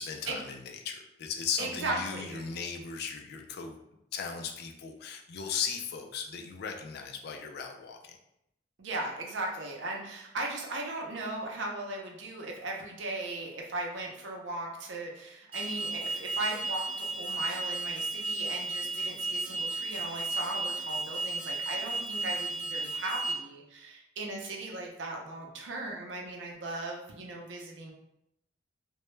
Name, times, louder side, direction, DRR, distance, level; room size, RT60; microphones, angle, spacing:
voice 1, 0.0-3.8 4.1-8.2, left 6 dB, 60° left, 3 dB, 0.3 m, -37 dB
voice 2, 1.6-2.5 8.8-27.9, right 2 dB, 80° right, 0 dB, 0.5 m, -37 dB
Alarm, 15.5-23.3, right 2 dB, 30° right, 0.6 m, -34 dB
2.1 x 2.0 x 3.0 m, 0.80 s
head